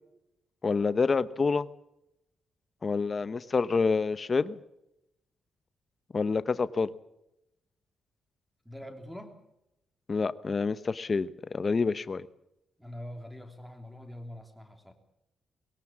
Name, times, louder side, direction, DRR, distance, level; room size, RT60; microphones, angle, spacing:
voice 1, 0.6-1.7 2.8-4.6 6.1-6.9 10.1-12.3, left 4 dB, 25° left, 15 dB, 0.8 m, -27 dB
voice 2, 8.6-9.4 12.8-14.9, left 1 dB, ahead, 5 dB, 3.1 m, -44 dB
22.0 x 17.5 x 7.4 m, 0.85 s
wide cardioid pair, 175°, 0 cm